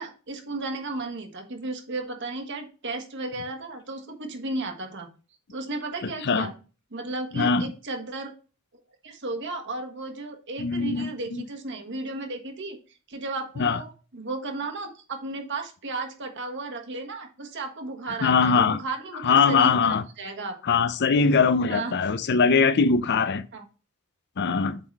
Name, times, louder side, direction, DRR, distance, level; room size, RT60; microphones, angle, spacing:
voice 1, 0.0-5.1 5.5-6.5 6.9-8.3 9.0-12.8 13.1-19.8 20.2-20.6 21.6-21.9 23.5-23.6, right 3 dB, 55° right, 1.3 m, -34 dB
voice 2, 6.0-6.5 7.4-7.7 10.6-11.1 13.6-13.8 18.2-18.8 19.2-20.0 20.6-23.4 24.4-24.8, left 5 dB, 50° left, 0.5 m, -21 dB
8.1 x 3.9 x 4.1 m
head